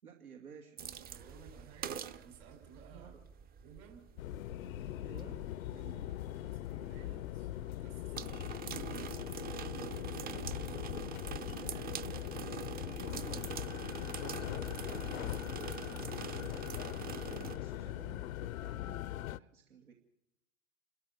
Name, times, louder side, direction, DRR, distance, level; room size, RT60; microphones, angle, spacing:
voice 1, 0.0-0.8 2.9-3.2 5.0-5.4 10.1-10.7 11.4-15.0 17.2-19.9, right 6 dB, 90° right, 0 dB, 2.7 m, -54 dB
sound 1, 0.8-17.6, right 8 dB, 20° right, 0.7 m, -45 dB
voice 2, 1.1-3.2 3.6-4.1 5.6-9.0 9.7-10.4 10.8-11.7 13.6-16.3, right 7 dB, 60° right, 5 dB, 5.8 m, -57 dB
sound 2, 4.2-19.4, left 14 dB, 70° left, 0.7 m, -41 dB
28.5 x 13.5 x 7.0 m, 0.85 s
hypercardioid pair, 110°, 42 cm